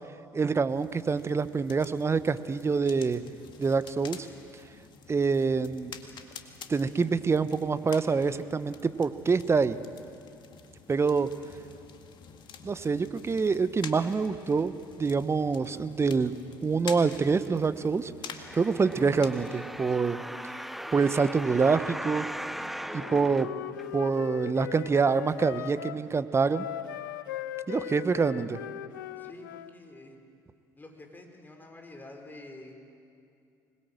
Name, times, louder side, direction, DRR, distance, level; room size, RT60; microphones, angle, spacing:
voice 1, 0.3-3.2 3.6-4.3 5.1-5.9 6.7-9.8 10.9-11.3 12.6-16.3 16.6-18.1 18.5-20.2 20.9-22.2 22.9-23.5 23.9-26.7 27.7-28.6, right 5 dB, 25° right, 13 dB, 1.1 m, -26 dB
sound 1, 0.7-19.5, left 6 dB, 45° left, 2.1 m, -48 dB
sound 2, 18.4-24.3 24.9-25.0, equal, ahead, 0.6 m, -39 dB
Wind instrument woodwind instrument, 22.9-26.0 26.5-29.7, left 12 dB, 75° left, 0.7 m, -39 dB
voice 2, 29.2-30.2 30.8-32.7, left 2 dB, 20° left, 3 dB, 5.1 m, -48 dB
26.0 x 21.0 x 7.7 m, 2.5 s
figure-of-eight pair, 55°, 10 cm